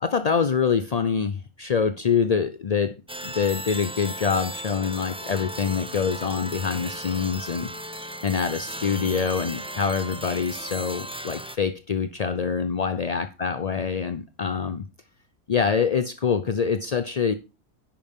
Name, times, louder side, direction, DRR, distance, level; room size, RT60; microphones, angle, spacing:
voice 1, 0.0-3.0 3.2-7.7 8.2-14.8 15.5-17.3, left 6 dB, 45° left, 0.5 m, -25 dB
sound 1, 3.1-11.6, equal, 10° right, 0.4 m, -36 dB
10.5 x 8.7 x 3.6 m
omnidirectional pair, 1.5 m